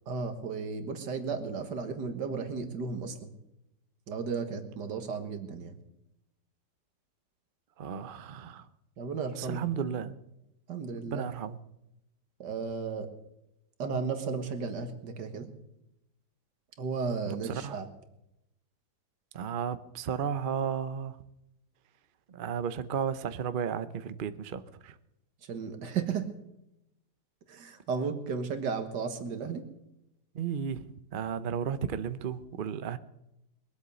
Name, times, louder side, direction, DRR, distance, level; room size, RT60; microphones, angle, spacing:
voice 1, 0.1-3.3 4.1-5.8 9.0-9.6 10.7-11.3 12.4-13.1 13.8-15.5 16.8-17.9 25.4-26.3 27.5-29.7, right 5 dB, 80° right, 8 dB, 2.1 m, -34 dB
voice 2, 7.8-8.7 9.4-10.1 11.1-11.6 17.3-17.8 19.3-21.2 22.3-24.9 30.3-30.8 31.1-33.0, right 7 dB, 50° right, 12 dB, 0.6 m, -34 dB
21.5 x 8.1 x 6.9 m, 0.87 s
omnidirectional pair, 1.8 m